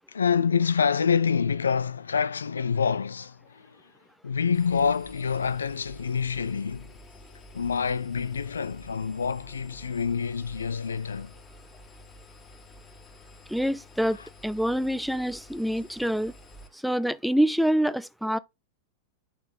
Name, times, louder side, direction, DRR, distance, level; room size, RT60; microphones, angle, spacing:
voice 1, 0.1-3.9 4.2-6.9 7.5-11.3 14.1-14.3, left 6 dB, 70° left, 0.4 m, -27 dB
Engine, 4.5-16.7, left 1 dB, 20° left, 1.9 m, -50 dB
voice 2, 13.5-16.3 16.7-18.4, equal, ahead, 0.4 m, -26 dB
8.9 x 4.1 x 4.0 m
figure-of-eight pair, 90°, 0 cm